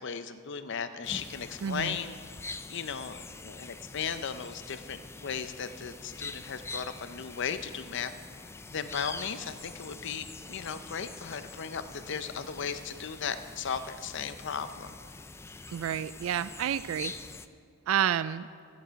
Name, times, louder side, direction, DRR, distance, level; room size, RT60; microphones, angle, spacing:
voice 1, 0.0-2.1 2.7-8.1 8.7-15.0, left 6 dB, 60° left, 11 dB, 0.6 m, -36 dB
sound 1, 1.0-17.5, left 3 dB, 15° left, 0.3 m, -45 dB
voice 2, 1.6-2.0 15.7-17.1 17.9-18.5, right 9 dB, 75° right, 16 dB, 0.3 m, -29 dB
14.0 x 10.5 x 5.2 m, 2.2 s
head